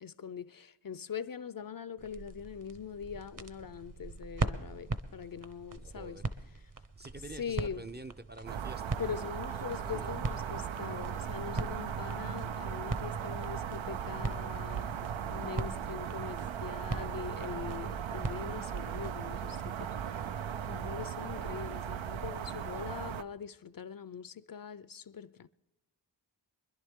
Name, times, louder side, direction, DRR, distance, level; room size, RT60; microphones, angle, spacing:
voice 1, 0.0-6.2 7.4-7.8 9.0-20.0 20.7-25.5, left 7 dB, 50° left, 0.5 m, -42 dB
sound 1, 2.0-19.5, right 2 dB, 45° right, 1.0 m, -41 dB
voice 2, 5.8-6.2 7.0-8.9 9.8-10.2, right 2 dB, 25° right, 0.5 m, -47 dB
sound 2, 8.5-23.2, right 8 dB, 85° right, 0.6 m, -38 dB
24.5 x 11.0 x 3.6 m
cardioid pair, 40°, 45 cm